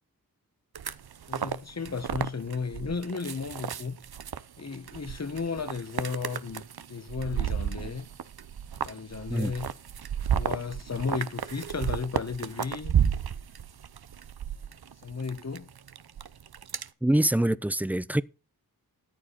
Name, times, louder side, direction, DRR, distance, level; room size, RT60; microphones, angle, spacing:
sound 1, 0.7-16.9, right 8 dB, 85° right, 0.8 m, -33 dB
voice 1, 1.3-4.0 4.6-6.6 6.9-8.1 8.8-9.7 10.3-12.9 15.0-15.7, left 5 dB, 45° left, 1.4 m, -34 dB
voice 2, 17.0-18.2, right 1 dB, 5° right, 0.6 m, -24 dB
14.0 x 9.5 x 4.2 m
wide cardioid pair, 75°, 36 cm